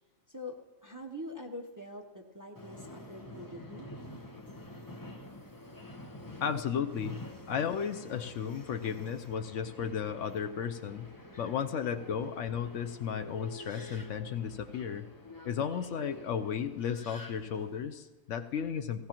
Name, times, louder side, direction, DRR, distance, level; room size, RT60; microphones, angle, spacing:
voice 1, 0.3-3.9, left 1 dB, 20° right, 1 dB, 0.7 m, -44 dB
Subway metro underground, 2.5-17.8, left 1 dB, 15° left, 0.8 m, -48 dB
voice 2, 6.4-7.2 7.5-11.1 11.4-15.0 15.4-19.1, left 7 dB, 70° left, 8 dB, 0.9 m, -34 dB
17.5 x 16.0 x 3.0 m, 1.3 s
omnidirectional pair, 1.4 m